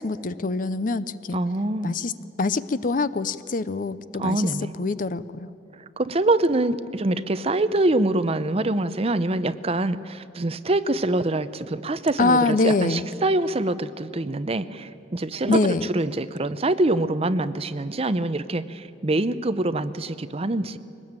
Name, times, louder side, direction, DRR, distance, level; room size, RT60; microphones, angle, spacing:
voice 1, 0.0-1.4 1.8-2.1 2.4-4.4 4.8-5.5 12.2-13.1 15.5-15.8, left 3 dB, 50° left, 15 dB, 0.6 m, -24 dB
voice 2, 1.3-1.9 4.2-4.7 6.0-20.8, right 2 dB, 35° right, 13 dB, 0.7 m, -25 dB
22.0 x 19.0 x 8.9 m, 2.8 s
head